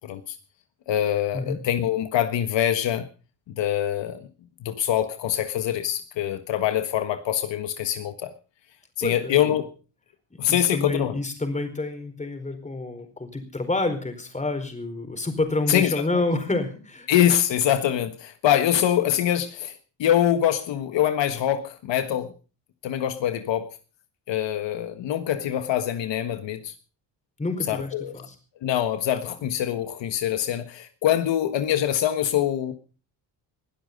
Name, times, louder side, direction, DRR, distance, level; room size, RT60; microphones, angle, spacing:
voice 1, 0.0-0.4 0.9-3.0 3.5-4.2 4.6-8.3 9.0-9.7 10.4-11.1 15.7-16.0 17.1-22.3 22.8-23.7 24.3-26.7 27.7-28.3 28.6-32.7, left 11 dB, 70° left, 1.5 m, -24 dB
voice 2, 9.0-9.4 10.3-17.1 27.4-28.3, left 2 dB, 15° left, 4.5 m, -28 dB
21.0 x 12.0 x 5.3 m
cardioid pair, 120°, 46 cm